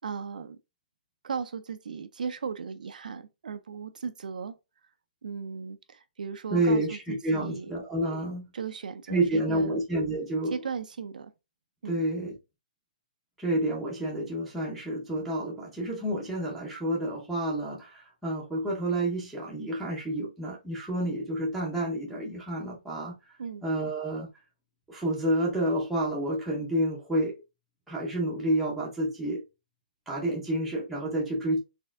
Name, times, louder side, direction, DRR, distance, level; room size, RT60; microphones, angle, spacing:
voice 1, 0.0-0.6 1.2-4.5 5.2-7.7 8.5-9.8 10.5-11.3 11.8-12.0 23.4-23.6, right 6 dB, 65° right, 0.4 m, -36 dB
voice 2, 6.5-8.4 9.1-10.6 11.8-12.3 13.4-23.3 23.6-24.3 24.9-27.4 27.9-29.4 30.1-31.6, right 1 dB, ahead, 0.6 m, -29 dB
4.1 x 3.5 x 2.4 m
hypercardioid pair, 175°, 5 cm